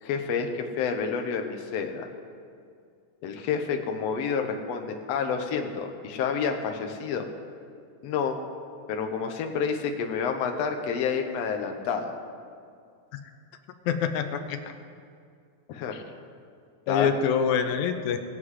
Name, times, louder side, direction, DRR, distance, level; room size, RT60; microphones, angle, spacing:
voice 1, 0.0-2.1 3.2-7.3 8.0-8.4 8.9-12.2 15.7-16.0 16.9-17.1, left 6 dB, 65° left, 4 dB, 1.9 m, -29 dB
voice 2, 13.9-14.6 16.9-18.2, left 7 dB, 85° left, 7 dB, 2.1 m, -25 dB
19.5 x 7.7 x 4.9 m, 2.2 s
omnidirectional pair, 3.4 m